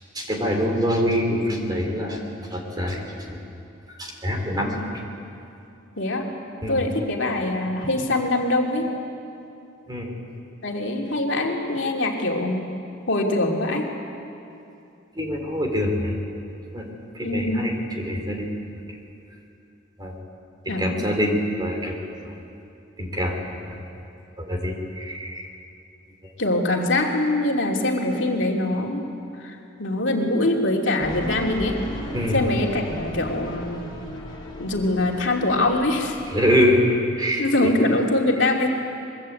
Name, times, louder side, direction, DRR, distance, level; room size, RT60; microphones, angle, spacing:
voice 1, 0.1-2.2 2.5-3.0 3.3-3.4 3.9-4.8 6.6-6.7 9.9-10.1 15.2-16.1 16.7-16.8 17.2-18.5 18.9-19.0 20.0-20.2 20.7-22.4 23.0-23.7 24.4-25.5 32.1-32.4 36.3-36.8 37.1-37.7, equal, 20° right, 2 dB, 3.6 m, -25 dB
voice 2, 6.0-6.3 6.7-8.9 10.6-12.7 13.1-13.9 17.2-17.8 20.7-21.1 26.4-29.1 29.4-31.8 32.3-33.9 34.6-36.2 37.4-38.7, left 2 dB, 60° left, 0 dB, 2.9 m, -23 dB
sound 1, 31.0-36.5, equal, 20° left, 5.3 m, -36 dB
23.5 x 23.0 x 8.6 m, 2.7 s
head